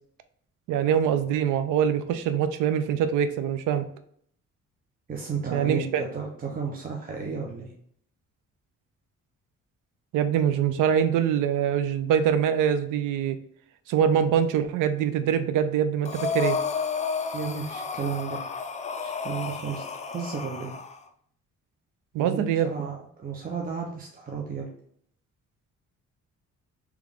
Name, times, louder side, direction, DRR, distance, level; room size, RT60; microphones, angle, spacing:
voice 1, 0.7-3.9 5.5-6.0 10.1-13.4 13.9-16.6 22.1-22.9, right 8 dB, 90° right, 11 dB, 0.5 m, -24 dB
voice 2, 5.1-7.7 17.3-18.4 19.0-20.7 22.2-24.7, right 5 dB, 30° right, 0 dB, 0.7 m, -33 dB
Breathing, 16.0-21.0, left 5 dB, 25° left, 0.4 m, -31 dB
3.6 x 3.1 x 3.5 m, 0.66 s
cardioid pair, 90°, 30 cm